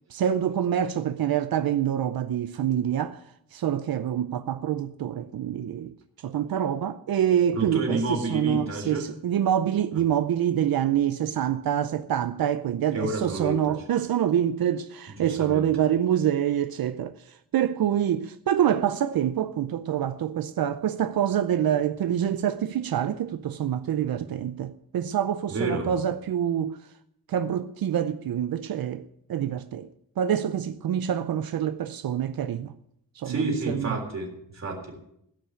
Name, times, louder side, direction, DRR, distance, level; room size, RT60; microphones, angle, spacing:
voice 1, 0.1-3.2 3.5-5.9 6.2-17.1 17.5-26.8 27.3-29.9 30.2-32.7 33.2-34.0, right 10 dB, 80° right, 0.6 m, -26 dB
voice 2, 7.6-9.1 12.9-13.8 15.2-15.7 25.5-25.9 33.2-34.9, right 2 dB, 50° right, 3.7 m, -30 dB
16.5 x 5.7 x 8.8 m
wide cardioid pair, 180°, 35 cm